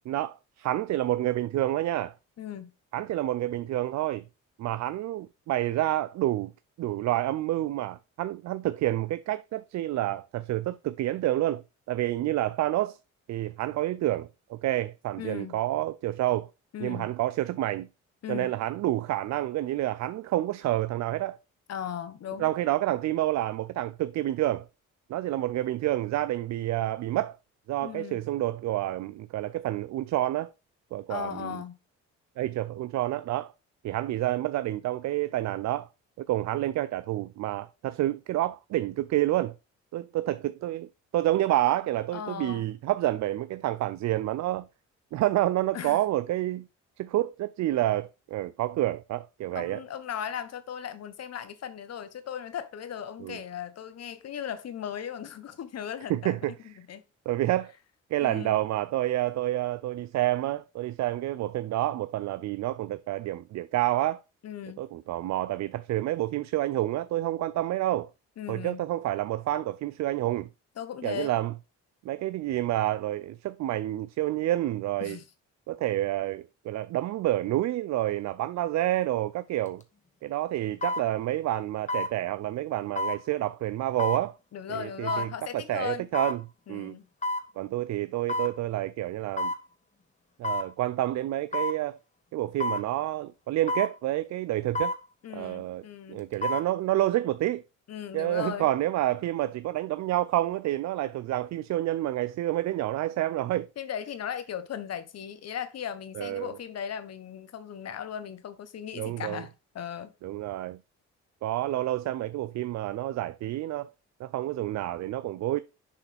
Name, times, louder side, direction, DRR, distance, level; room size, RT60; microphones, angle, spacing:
voice 1, 0.1-2.1 2.9-4.2 4.6-6.5 6.8-11.6 11.9-13.0 13.3-16.5 16.8-17.9 18.3-21.4 22.4-24.7 25.1-27.4 27.7-30.5 30.9-31.6 32.4-33.5 33.8-35.9 36.2-39.5 39.9-44.7 45.1-46.7 47.0-49.8 53.2-53.4 56.1-56.5 57.3-57.7 58.1-64.2 64.8-68.1 68.5-70.5 71.0-71.5 72.0-75.2 75.7-79.8 80.2-84.3 84.7-85.3 85.5-86.4 86.7-87.0 87.6-89.5 90.4-92.0 92.3-94.9 95.3-95.8 96.1-97.6 98.1-103.7 106.1-106.5 109.0-109.4 110.2-110.8 111.4-113.9 114.2-115.6, right 14 dB, 65° right, 0.5 m, -29 dB
voice 2, 2.4-2.7 15.2-15.6 16.7-17.1 18.2-18.5 21.7-22.5 27.8-28.2 31.1-31.8 42.1-42.6 45.7-46.0 49.5-57.0 58.2-58.6 64.4-64.8 68.4-68.8 70.8-71.3 75.0-75.3 84.5-86.1 86.7-87.1 95.2-96.3 97.9-98.7 103.8-110.1, left 9 dB, 55° left, 1.1 m, -37 dB
sound 1, 79.7-79.8 80.8-81.1 81.9-82.1 83.0-83.2 84.0-84.2 85.1-85.3 86.1-86.4 87.2-87.5 88.3-88.5 89.4-89.6 90.4-90.7 91.5-91.8 92.6-92.9 93.7-93.9 94.7-95.0 96.2-96.7 97.1-97.2, left 1 dB, 25° left, 1.2 m, -29 dB
7.0 x 4.8 x 3.4 m
cardioid pair, 90°, 30 cm